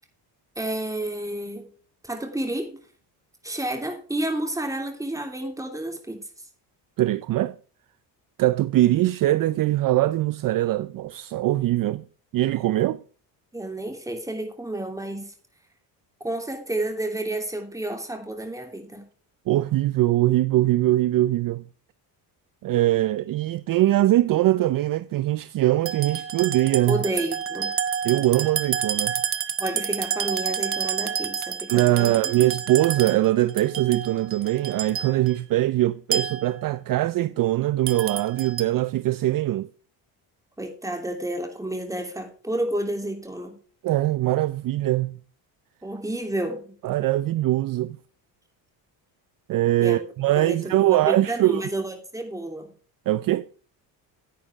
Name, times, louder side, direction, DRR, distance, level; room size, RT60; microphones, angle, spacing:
voice 1, 0.6-1.7 2.0-2.8 3.4-6.2 13.5-15.3 16.2-19.1 26.9-27.7 29.6-32.2 40.6-43.6 45.8-46.8 49.8-50.0 50.4-52.7, right 1 dB, 5° right, 3.1 m, -30 dB
voice 2, 7.0-7.6 8.4-12.0 12.3-13.0 19.5-21.6 22.6-27.0 28.0-29.1 31.7-39.7 43.8-45.2 46.8-48.0 49.5-51.6 53.1-53.5, right 15 dB, 50° right, 0.5 m, -22 dB
sound 1, 25.9-35.3 36.1-36.6 37.9-38.6, right 7 dB, 30° right, 0.9 m, -29 dB
10.0 x 9.3 x 3.5 m
cardioid pair, 100°, 43 cm